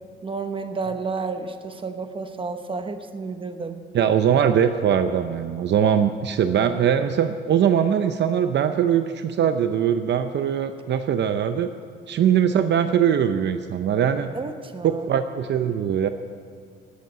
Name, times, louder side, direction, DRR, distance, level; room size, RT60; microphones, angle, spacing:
voice 1, 0.2-3.8 14.3-15.1, right 4 dB, 25° right, 8 dB, 1.1 m, -31 dB
voice 2, 3.9-11.7 12.1-14.3 14.8-16.1, right 8 dB, 55° right, 9 dB, 0.6 m, -21 dB
17.5 x 8.3 x 8.0 m, 2.2 s
cardioid pair, 130°, 21 cm